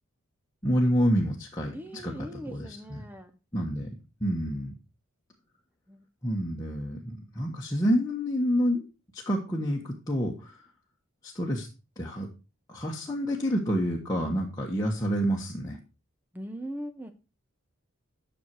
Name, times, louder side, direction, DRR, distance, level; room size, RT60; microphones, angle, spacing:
voice 1, 0.6-2.1 2.5-3.0 3.5-3.9 4.2-4.7 6.2-8.8 9.1-10.6 11.2-11.7 12.0-12.3 12.7-15.8, equal, 15° left, -3 dB, 1.3 m, -28 dB
voice 2, 1.7-3.3 5.9-6.0 16.3-17.1, equal, 10° right, 7 dB, 0.7 m, -40 dB
10.5 x 6.4 x 4.7 m, 0.32 s
head